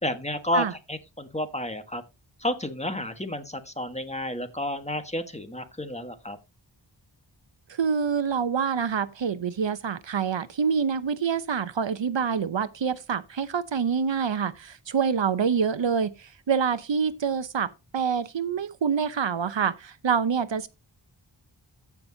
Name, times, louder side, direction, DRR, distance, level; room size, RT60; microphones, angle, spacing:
voice 1, 0.0-2.0 2.4-6.4, left 1 dB, 15° left, 1.3 m, -31 dB
voice 2, 7.7-20.7, right 6 dB, 75° right, 0.8 m, -26 dB
15.0 x 6.0 x 2.7 m
wide cardioid pair, 60°, 45 cm